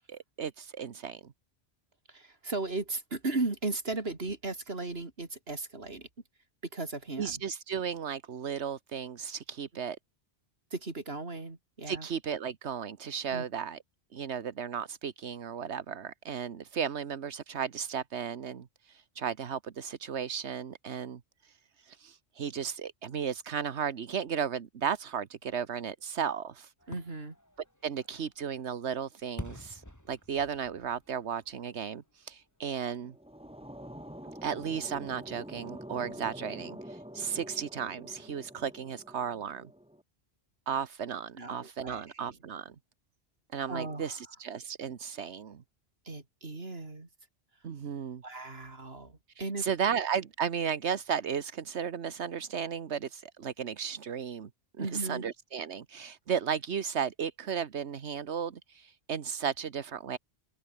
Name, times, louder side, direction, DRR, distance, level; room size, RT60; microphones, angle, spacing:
voice 1, 0.1-1.3 7.2-10.0 11.9-13.8 14.1-26.7 27.8-33.1 34.4-39.7 40.7-42.7 43.5-45.6 47.6-48.2 49.3-54.5 54.8-60.2, right 7 dB, 80° right, 1.4 m, -35 dB
voice 2, 2.1-6.1 6.7-7.4 10.7-12.1 13.3-13.4 26.9-27.3 41.4-42.4 43.7-44.2 46.0-47.1 48.2-49.6 54.8-55.2, right 3 dB, 65° right, 3.5 m, -36 dB
Fireworks, 26.8-32.6 33.0-33.1, equal, 15° left, 5.0 m, -49 dB
sound 1, 33.0-40.0, equal, 5° right, 2.6 m, -46 dB
omnidirectional pair, 1.1 m